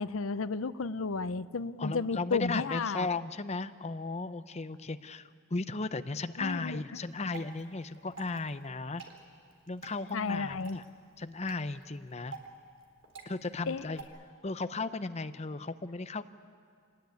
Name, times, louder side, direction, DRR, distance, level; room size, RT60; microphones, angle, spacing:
voice 1, 0.0-3.1 6.4-6.8 10.1-10.8 13.7-13.8, left 4 dB, 90° left, 15 dB, 0.7 m, -33 dB
voice 2, 1.8-9.0 9.7-10.8 11.2-12.3 13.3-14.1 14.4-16.2, left 3 dB, 35° left, 11 dB, 0.7 m, -35 dB
Water / Drip, 7.0-14.0, right 4 dB, 70° right, 3.7 m, -51 dB
27.0 x 20.0 x 9.4 m, 2.2 s
head